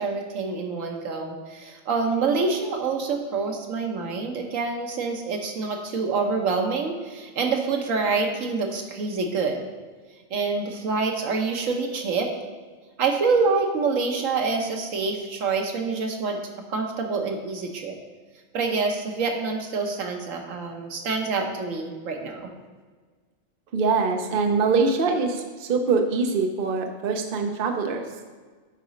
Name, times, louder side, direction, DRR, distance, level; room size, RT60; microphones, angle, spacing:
voice 1, 0.0-9.6 10.3-12.3 13.0-16.4 16.7-18.0 18.5-22.5, right 4 dB, 80° right, 3 dB, 1.3 m, -26 dB
voice 2, 23.7-28.0, right 4 dB, 50° right, 4 dB, 0.8 m, -23 dB
8.8 x 4.1 x 5.0 m, 1.4 s
omnidirectional pair, 1.4 m